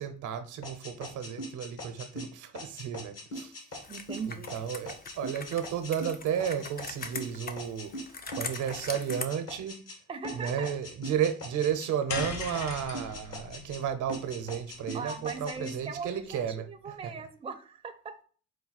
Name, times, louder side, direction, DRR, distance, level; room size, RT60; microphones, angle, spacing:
voice 1, 0.0-3.9 4.3-9.8 10.3-17.1, right 8 dB, 80° right, 0.7 m, -33 dB
sound 1, 0.6-10.0 10.2-11.9 12.2-13.8 14.1-15.8, equal, 55° left, 1.3 m, -41 dB
Computer keyboard, 3.8-9.3, left 4 dB, 30° left, 0.6 m, -42 dB
voice 2, 3.9-4.5 10.1-10.7 14.9-16.2 16.7-18.2, right 5 dB, 20° right, 0.5 m, -39 dB
sound 2, 12.1-16.5, left 5 dB, 70° left, 0.7 m, -41 dB
4.9 x 2.3 x 3.9 m
cardioid pair, 90°, 30 cm